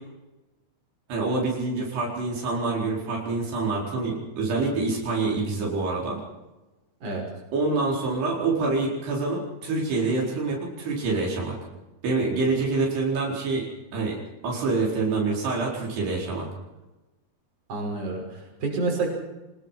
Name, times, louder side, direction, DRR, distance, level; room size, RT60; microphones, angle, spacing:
voice 1, 1.1-6.2 7.5-11.5 12.0-13.7 13.9-14.2 14.4-16.4, right 3 dB, 90° right, -2 dB, 6.6 m, -26 dB
voice 2, 17.7-19.1, right 3 dB, 45° right, 0 dB, 7.1 m, -29 dB
25.0 x 20.0 x 5.8 m, 1.1 s
omnidirectional pair, 4.6 m